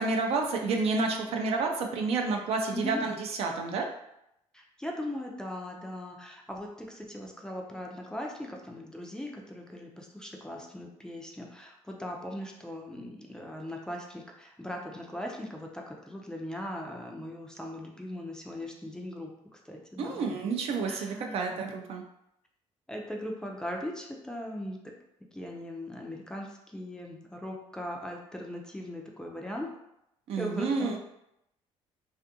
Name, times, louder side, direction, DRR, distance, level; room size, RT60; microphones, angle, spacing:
voice 1, 0.0-3.9 20.0-22.0 30.3-31.0, right 4 dB, 60° right, 3 dB, 0.5 m, -30 dB
voice 2, 2.7-3.0 4.5-20.2 20.8-21.4 22.9-24.9 25.3-29.7 30.4-31.0, left 1 dB, 5° left, 0 dB, 0.4 m, -39 dB
2.5 x 2.5 x 2.6 m, 0.81 s
cardioid pair, 110°, 12 cm